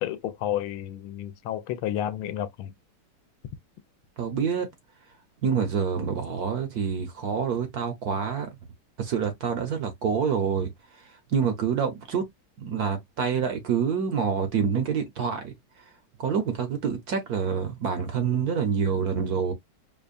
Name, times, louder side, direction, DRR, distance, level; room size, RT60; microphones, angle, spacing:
voice 1, 0.0-2.7, left 11 dB, 85° left, 1.4 m, -31 dB
voice 2, 4.2-4.7 5.4-8.5 9.0-12.2 12.6-15.8 16.2-19.5, right 6 dB, 60° right, 1.1 m, -27 dB
5.2 x 2.3 x 2.4 m
omnidirectional pair, 2.2 m